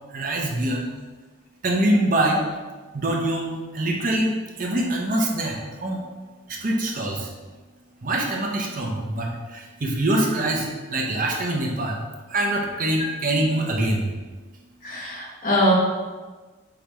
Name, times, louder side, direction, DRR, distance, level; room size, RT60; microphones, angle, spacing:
voice 1, 0.1-0.9 1.6-2.4 2.9-6.0 6.5-7.3 8.0-12.0 12.3-14.1, right 1 dB, 45° right, -1 dB, 0.6 m, -24 dB
voice 2, 14.8-15.7, equal, 40° left, -4 dB, 1.0 m, -22 dB
4.9 x 3.2 x 3.0 m, 1.3 s
head